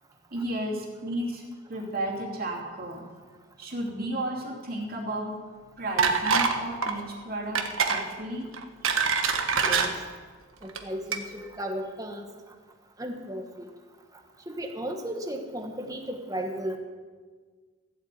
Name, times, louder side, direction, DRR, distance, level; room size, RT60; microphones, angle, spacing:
voice 1, 0.3-1.4 1.7-3.0 3.6-5.3 5.8-7.6 7.8-8.5 8.8-9.1, right 1 dB, 45° right, -2 dB, 2.8 m, -33 dB
sound 1, 6.0-6.6 6.8-7.0 7.5-8.0 8.5-9.9 10.6-10.8 11.1-11.2, right 5 dB, 80° right, 1.4 m, -24 dB
voice 2, 9.5-10.0 10.6-12.2 13.0-13.7 14.5-16.8, right 1 dB, 15° right, 4 dB, 1.3 m, -35 dB
15.0 x 8.1 x 8.3 m, 1.5 s
head